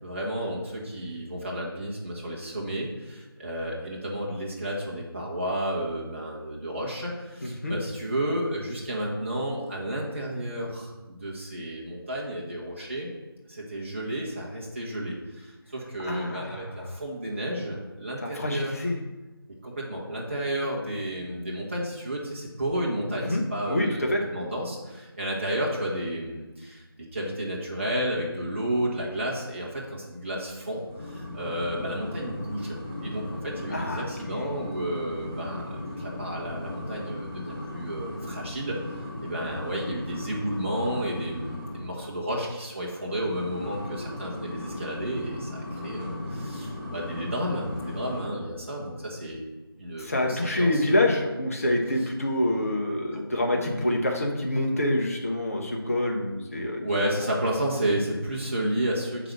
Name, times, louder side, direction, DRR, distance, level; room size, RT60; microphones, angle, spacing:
voice 1, 0.0-13.1 13.5-18.7 19.6-24.0 24.3-32.8 33.0-38.8 39.2-49.4 49.8-50.8 53.1-53.3 53.5-53.9 56.8-59.3, right 1 dB, 30° right, -3 dB, 0.9 m, -32 dB
voice 2, 7.4-7.7 16.0-16.6 18.2-19.0 23.3-23.4 23.7-24.2 33.7-34.4 50.0-56.8, left 1 dB, 35° left, 0 dB, 0.9 m, -26 dB
sound 1, 30.9-42.0 43.1-48.2, left 1 dB, 10° left, 1.3 m, -36 dB
5.9 x 4.0 x 5.9 m, 1.1 s
figure-of-eight pair, 165°, 13 cm